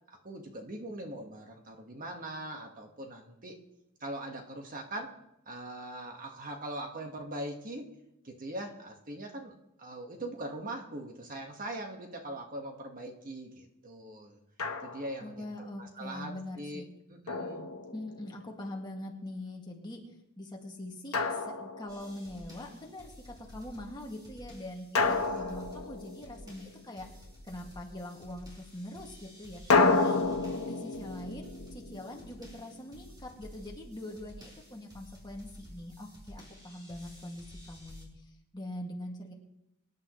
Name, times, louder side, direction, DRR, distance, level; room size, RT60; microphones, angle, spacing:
voice 1, 0.1-3.5 4.0-5.1 5.5-7.9 8.2-14.4 14.8-16.8 17.1-17.7 25.0-25.6, right 1 dB, 40° right, 2 dB, 1.5 m, -41 dB
Drum, 14.6-15.3 17.3-18.4 21.1-22.3 25.0-26.6 29.7-32.7, left 3 dB, 75° left, 1.2 m, -30 dB
voice 2, 15.2-16.9 17.9-20.0 20.4-27.1 27.4-30.4 30.7-38.2 38.5-39.3, left 1 dB, 20° left, 0 dB, 2.0 m, -43 dB
sound 1, 21.9-38.1, equal, 20° right, 4.0 m, -52 dB
24.5 x 11.0 x 3.1 m, 0.87 s
head